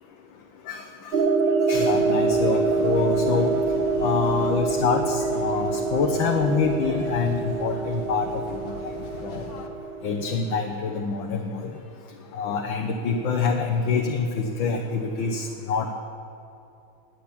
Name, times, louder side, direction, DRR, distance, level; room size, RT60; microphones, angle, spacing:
sound 1, 1.1-10.6, right 3 dB, 85° right, 0.5 m, -25 dB
voice 1, 1.7-3.5 4.0-8.4 9.2-9.4 10.0-11.7 12.3-15.9, left 5 dB, 75° left, 2 dB, 1.7 m, -26 dB
sound 2, 1.7-9.7, left 3 dB, 50° left, 1.6 m, -40 dB
20.0 x 7.2 x 8.6 m, 2.8 s
omnidirectional pair, 2.2 m